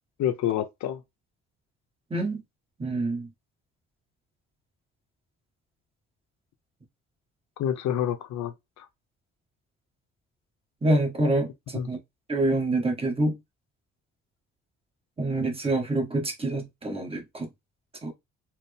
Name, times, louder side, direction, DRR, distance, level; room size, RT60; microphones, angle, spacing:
voice 1, 0.2-1.0 7.6-8.9 11.7-11.9, left 10 dB, 70° left, 0.7 m, -28 dB
voice 2, 2.1-2.4 2.8-3.3 10.8-12.0 12.3-13.4 15.2-17.5 18.0-18.1, right 2 dB, 20° right, 1.3 m, -26 dB
4.3 x 2.1 x 3.4 m
cardioid pair, 90°, 30 cm